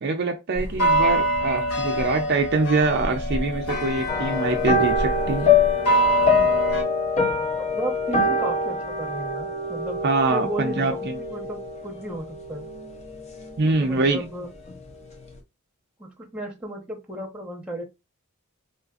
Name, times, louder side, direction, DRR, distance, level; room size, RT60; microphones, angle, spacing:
voice 1, 0.0-5.5 10.0-11.1 13.6-14.2, right 3 dB, 50° right, 0.4 m, -24 dB
sound 1, 0.6-6.8, right 1 dB, 75° left, 1.0 m, -25 dB
sound 2, 4.1-13.7 13.9-14.3 14.7-14.8, left 4 dB, 30° left, 0.6 m, -25 dB
voice 2, 7.6-10.0 10.3-12.7 13.7-14.5 16.0-17.8, right 1 dB, 5° right, 0.9 m, -34 dB
3.8 x 2.5 x 2.4 m
head